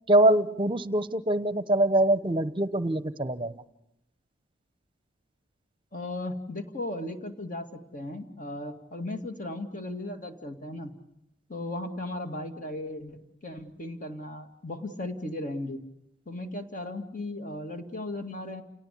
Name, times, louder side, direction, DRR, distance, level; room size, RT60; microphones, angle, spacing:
voice 1, 0.1-3.6, right 1 dB, 25° right, 14 dB, 0.9 m, -24 dB
voice 2, 5.9-7.7 7.9-10.9 11.5-15.8 16.3-18.6, left 1 dB, 45° left, 7 dB, 2.2 m, -36 dB
29.0 x 18.0 x 8.5 m, 0.85 s
head